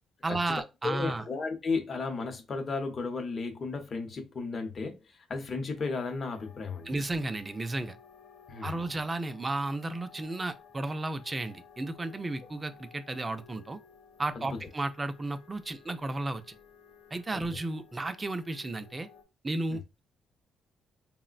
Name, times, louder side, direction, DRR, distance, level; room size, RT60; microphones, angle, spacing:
voice 1, 0.2-1.2 6.9-8.0 8.6-13.8 14.2-16.5 17.1-19.1 19.4-20.0, right 2 dB, 25° right, 0.4 m, -33 dB
voice 2, 0.8-6.9 8.5-8.8 14.3-14.6 17.3-17.6 19.7-19.8, left 4 dB, 45° left, 0.7 m, -34 dB
sound 1, 5.8-19.2, left 7 dB, 85° left, 0.4 m, -56 dB
3.7 x 2.1 x 2.4 m
cardioid pair, 90°, 0 cm